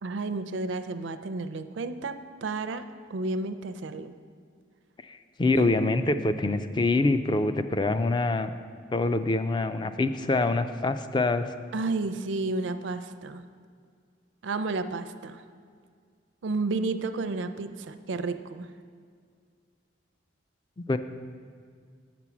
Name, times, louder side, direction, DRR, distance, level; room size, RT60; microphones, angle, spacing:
voice 1, 0.0-2.8 3.1-4.1 5.5-5.7 11.7-13.4 14.4-15.4 16.4-18.7, right 3 dB, 75° right, 11 dB, 0.5 m, -31 dB
voice 2, 5.1-8.5 8.9-11.5 20.8-21.0, left 2 dB, 25° left, 10 dB, 0.3 m, -25 dB
8.2 x 6.0 x 7.1 m, 2.1 s
head